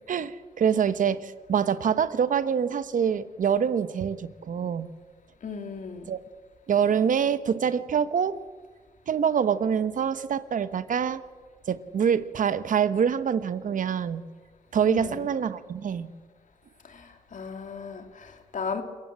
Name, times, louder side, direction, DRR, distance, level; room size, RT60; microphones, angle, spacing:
voice 1, 0.1-4.9 6.1-6.2 6.7-8.4 9.1-11.2 11.7-14.2 14.7-16.1, right 7 dB, 65° right, 13 dB, 1.1 m, -25 dB
voice 2, 5.4-6.1 14.8-15.3 16.9-18.8, left 5 dB, 60° left, 6 dB, 2.9 m, -36 dB
26.5 x 15.5 x 7.5 m, 1.5 s
supercardioid pair, 55°, 15 cm